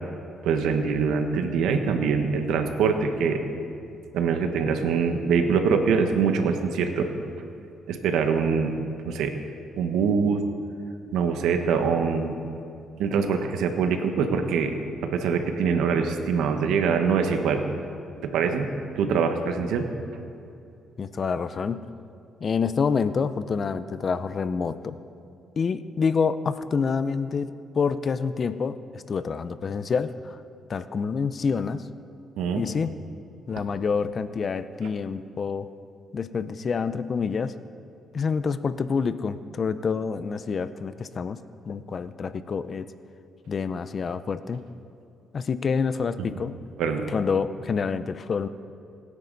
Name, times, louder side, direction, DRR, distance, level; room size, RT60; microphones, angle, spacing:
voice 1, 0.4-3.4 4.1-7.1 7.9-8.7 9.1-9.3 9.8-10.4 11.1-12.3 13.0-14.8 15.0-17.6 18.2-18.7 19.0-19.9 32.4-32.6 46.8-47.1, right 6 dB, 90° right, 6 dB, 1.3 m, -24 dB
voice 2, 21.0-21.8 22.4-25.0 25.6-30.4 30.7-31.8 32.6-32.9 33.5-35.7 36.1-37.5 38.1-41.4 41.7-42.9 43.5-44.6 45.3-46.5 47.1-48.5, left 5 dB, 45° left, 13 dB, 0.6 m, -27 dB
25.0 x 9.8 x 4.1 m, 2.6 s
cardioid pair, 90°, 0 cm